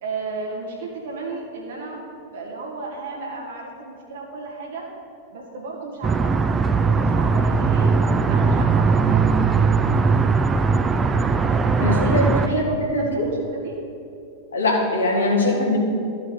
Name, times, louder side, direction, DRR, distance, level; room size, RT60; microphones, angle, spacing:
voice 1, 0.0-2.0 2.3-4.9 5.3-6.5 6.8-7.9 8.3-9.7 11.8-13.8 15.4-15.6, right 3 dB, 60° right, -2 dB, 2.0 m, -34 dB
sound 1, 6.0-12.5, right 4 dB, 20° right, 0.4 m, -19 dB
voice 2, 11.8-13.3 14.5-15.8, left 1 dB, 70° left, -2 dB, 1.9 m, -21 dB
13.5 x 5.5 x 3.9 m, 2.5 s
figure-of-eight pair, 90°, 0 cm